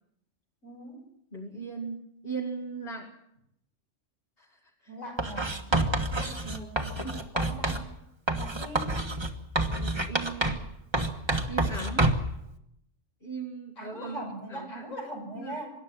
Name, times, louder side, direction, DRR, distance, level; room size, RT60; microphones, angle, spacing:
voice 1, 0.6-1.0 4.9-5.6 6.1-7.9 8.3-9.0 13.8-15.7, right 1 dB, 75° left, 0 dB, 7.7 m, -41 dB
voice 2, 1.3-3.2 4.4-4.9 5.7-6.1 6.5-7.2 9.8-10.6 11.5-12.1 13.2-14.2 14.5-14.9 15.4-15.6, right 4 dB, 50° left, -2 dB, 2.4 m, -39 dB
Writing, 5.2-7.9 8.3-10.7 10.9-12.3, right 2 dB, 20° right, 1.4 m, -28 dB
25.5 x 11.5 x 9.2 m, 0.80 s
omnidirectional pair, 1.3 m